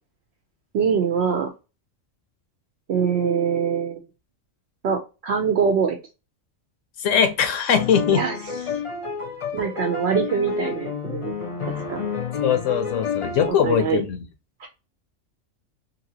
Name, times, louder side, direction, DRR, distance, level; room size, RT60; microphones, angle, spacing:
voice 1, 0.7-1.5 2.9-4.0 4.8-6.0 8.1-8.4 8.7-8.8 9.5-11.4 11.7-12.0 13.5-14.0 14.6-14.7, right 6 dB, 65° right, 2 dB, 0.7 m, -23 dB
voice 2, 7.0-8.2 12.4-14.2, left 8 dB, 75° left, 8 dB, 1.0 m, -21 dB
sound 1, 7.7-13.5, left 5 dB, 30° left, 0.7 m, -30 dB
2.9 x 2.7 x 2.7 m, 0.29 s
omnidirectional pair, 1.3 m